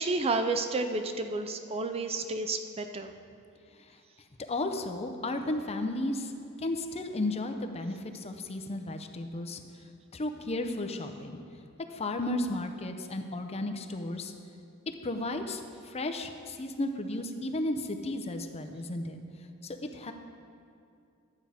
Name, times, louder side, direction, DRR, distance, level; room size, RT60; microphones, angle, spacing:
voice 1, 0.0-3.1, right 3 dB, 30° right, 7 dB, 0.4 m, -31 dB
voice 2, 4.5-6.3 6.6-9.6 10.1-11.4 11.9-14.3 14.9-19.2 19.6-20.1, left 2 dB, 30° left, 6 dB, 0.6 m, -34 dB
11.5 x 7.9 x 4.9 m, 2.5 s
head